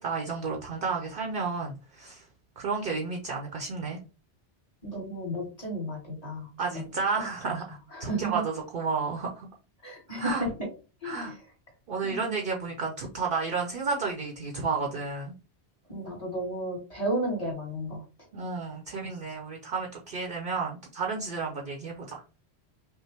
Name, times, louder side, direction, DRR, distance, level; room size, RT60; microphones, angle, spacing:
voice 1, 0.0-2.2 2.6-4.0 6.6-9.5 10.1-10.5 11.0-11.3 11.9-15.3 18.3-22.2, right 4 dB, 60° right, 1 dB, 0.8 m, -32 dB
voice 2, 4.8-6.5 7.9-8.4 9.8-10.5 11.0-11.3 12.0-12.3 15.9-18.0, right 1 dB, 35° left, -2 dB, 1.8 m, -33 dB
5.4 x 2.1 x 3.3 m, 0.33 s
omnidirectional pair, 1.1 m